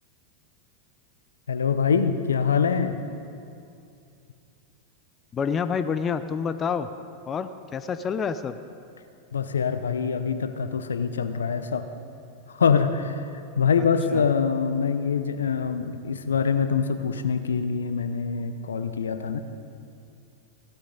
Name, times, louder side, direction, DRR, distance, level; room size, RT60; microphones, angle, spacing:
voice 1, 1.5-3.0 9.3-11.9 12.5-13.2 13.6-19.4, left 6 dB, 80° left, 10 dB, 0.7 m, -24 dB
voice 2, 5.3-6.9 7.3-8.6 14.1-14.2, left 6 dB, 25° left, 11 dB, 0.6 m, -28 dB
17.0 x 12.5 x 4.0 m, 2.5 s
hypercardioid pair, 95°, 0 cm